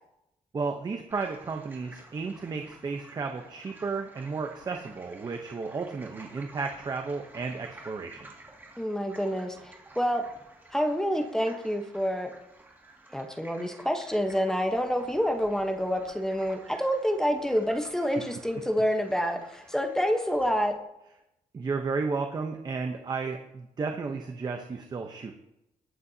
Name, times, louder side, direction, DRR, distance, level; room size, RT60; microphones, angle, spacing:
voice 1, 0.5-8.3 21.5-25.3, right 4 dB, 30° right, 4 dB, 0.8 m, -33 dB
sound 1, 1.1-20.7, right 2 dB, 15° right, 2.1 m, -52 dB
voice 2, 8.8-10.2 10.7-12.3 13.1-20.7, equal, 5° left, 4 dB, 1.0 m, -28 dB
20.0 x 8.6 x 2.8 m, 0.87 s
wide cardioid pair, 160°, 14 cm